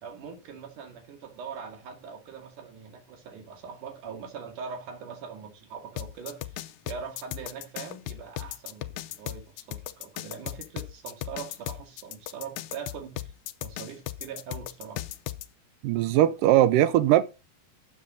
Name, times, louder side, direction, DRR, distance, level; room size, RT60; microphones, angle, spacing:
voice 1, 0.0-13.3 13.6-15.0, right 6 dB, 60° right, 3.6 m, -42 dB
sound 1, 6.0-15.5, left 14 dB, 85° left, 1.6 m, -36 dB
voice 2, 15.8-17.2, right 13 dB, 80° right, 2.1 m, -20 dB
13.5 x 7.4 x 3.8 m
omnidirectional pair, 4.2 m